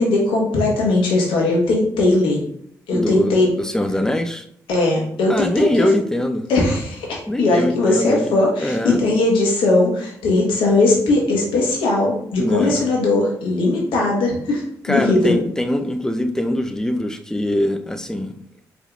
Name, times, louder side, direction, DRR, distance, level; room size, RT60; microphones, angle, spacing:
voice 1, 0.0-2.4 2.9-3.5 4.7-5.9 6.5-15.4, left 2 dB, 70° left, -2 dB, 1.5 m, -19 dB
voice 2, 2.9-4.5 5.3-6.5 7.3-8.3 8.6-9.0 12.4-12.8 14.8-18.3, left 1 dB, 5° left, 7 dB, 0.6 m, -22 dB
4.7 x 3.3 x 2.6 m, 0.67 s
hypercardioid pair, 40°, 9 cm